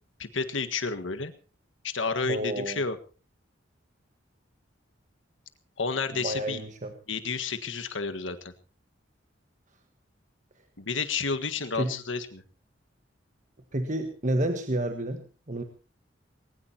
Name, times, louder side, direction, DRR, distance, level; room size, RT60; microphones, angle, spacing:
voice 1, 0.2-1.3 1.8-3.0 5.8-6.6 7.1-8.5 10.8-12.4, left 4 dB, 85° left, 9 dB, 1.7 m, -31 dB
voice 2, 2.2-2.8 6.1-6.9 11.7-11.9 13.7-15.6, right 1 dB, 40° right, 6 dB, 1.5 m, -30 dB
21.0 x 19.5 x 2.9 m, 0.36 s
head